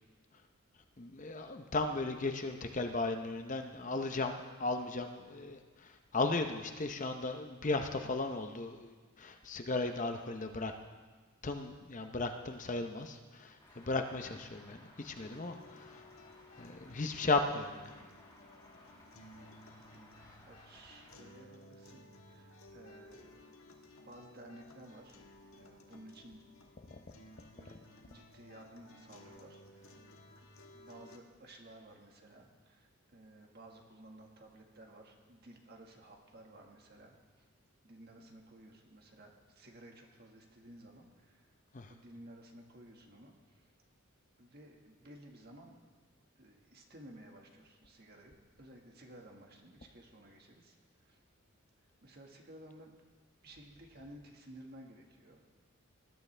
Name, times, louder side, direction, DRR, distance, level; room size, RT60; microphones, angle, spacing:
voice 1, 1.0-10.7 11.4-16.1 16.6-18.1 26.9-27.0 41.7-41.9, left 3 dB, 35° left, 6 dB, 0.7 m, -36 dB
Traffic noise roadway noise, 13.6-21.2, left 1 dB, 20° left, 2.0 m, -60 dB
sound 1, 15.2-31.2, left 1 dB, 75° left, 1.4 m, -57 dB
voice 2, 19.9-23.6 24.0-25.2 25.5-26.4 26.9-27.0 27.6-30.1 30.7-37.4 37.8-41.5 41.9-43.7 44.4-45.8 46.3-51.2 52.0-52.9 53.4-55.5, right 1 dB, 45° right, 1 dB, 1.7 m, -55 dB
20.0 x 11.0 x 3.3 m, 1.4 s
head